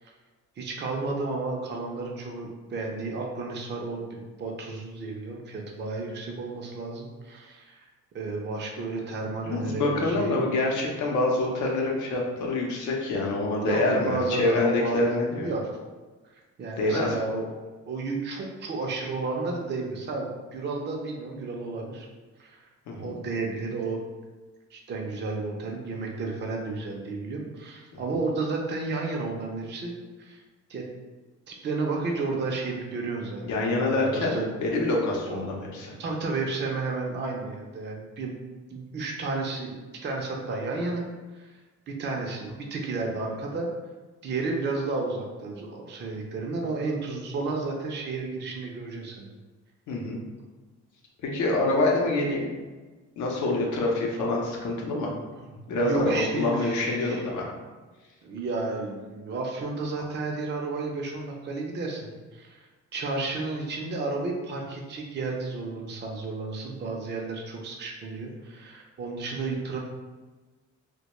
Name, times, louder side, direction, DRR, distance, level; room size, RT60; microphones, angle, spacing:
voice 1, 0.6-7.9 8.1-10.5 13.7-15.8 16.6-17.5 17.9-22.1 22.4-22.7 23.0-24.0 24.7-30.4 30.7-30.8 31.5-33.4 33.8-34.5 35.3-35.5 36.0-38.4 38.7-41.0 41.3-41.6 41.9-43.7 44.2-49.3 55.4-55.5 55.8-57.3 58.2-62.7 62.9-69.8, right 3 dB, 35° right, 0 dB, 0.5 m, -32 dB
voice 2, 9.4-15.5 16.8-17.1 22.9-23.2 27.9-28.0 33.4-35.9 49.9-50.2 51.2-52.5 53.2-55.1 55.7-57.5, left 2 dB, 70° left, -1 dB, 0.7 m, -26 dB
2.2 x 2.2 x 2.9 m, 1.3 s
cardioid pair, 90°, 30 cm